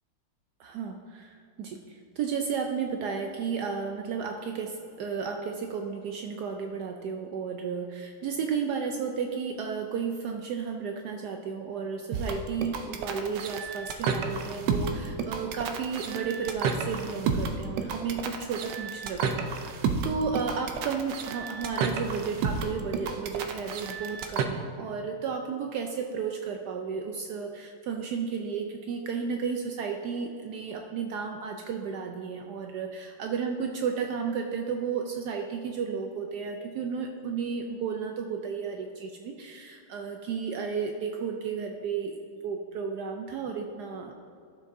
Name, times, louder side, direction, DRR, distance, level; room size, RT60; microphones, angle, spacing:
voice 1, 0.6-42.2 42.4-44.1, right 6 dB, 85° right, 3 dB, 0.8 m, -33 dB
sound 1, 12.1-24.4, right 5 dB, 70° right, 1.2 m, -31 dB
12.5 x 7.3 x 2.6 m, 2.4 s
omnidirectional pair, 2.3 m